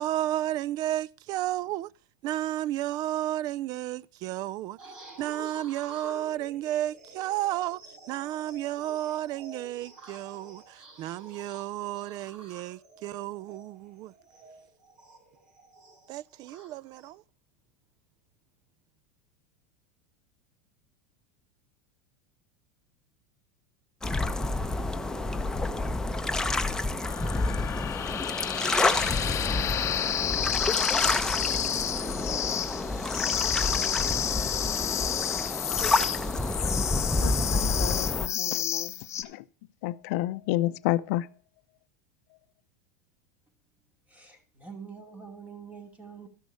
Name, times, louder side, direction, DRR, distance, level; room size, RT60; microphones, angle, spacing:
voice 1, 0.0-1.9 2.2-4.8 5.2-7.8 8.1-14.1 16.1-17.2, right 14 dB, 45° right, 0.4 m, -32 dB
sound 1, 4.8-17.1, right 2 dB, 65° right, 6.6 m, -49 dB
sound 2, 24.0-38.3, left 2 dB, 5° left, 0.9 m, -29 dB
sound 3, 27.0-39.2, left 10 dB, 35° left, 0.9 m, -31 dB
voice 2, 37.2-39.4 39.8-41.3, left 15 dB, 65° left, 0.6 m, -31 dB
voice 3, 44.1-46.3, right 6 dB, 15° right, 2.8 m, -45 dB
13.5 x 6.1 x 4.7 m
hypercardioid pair, 105°, 9 cm